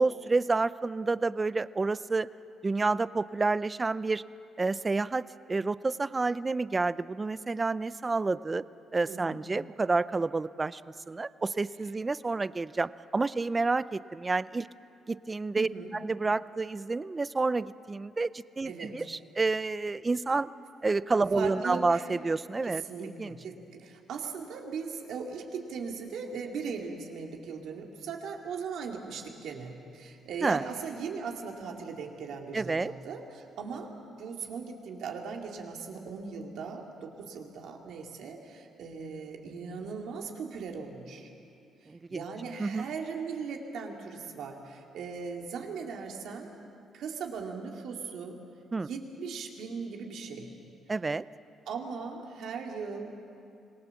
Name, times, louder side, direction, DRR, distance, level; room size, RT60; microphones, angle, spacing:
voice 1, 0.0-2.3 2.6-4.2 4.6-5.2 5.5-8.6 8.9-10.8 11.1-14.7 15.1-15.7 16.0-20.5 20.8-23.4 30.4-30.6 32.5-32.9 41.9-42.2 42.6-42.9 48.7-48.9 50.9-51.2, right 3 dB, 25° right, 17 dB, 0.5 m, -29 dB
voice 2, 9.0-9.4 15.6-15.9 18.6-18.9 21.3-22.1 22.6-33.9 34.2-41.3 42.1-46.5 46.9-48.4 48.8-50.5 51.7-53.1, right 5 dB, 75° right, 1 dB, 2.7 m, -38 dB
26.0 x 19.0 x 7.3 m, 2.6 s
cardioid pair, 90°, 0 cm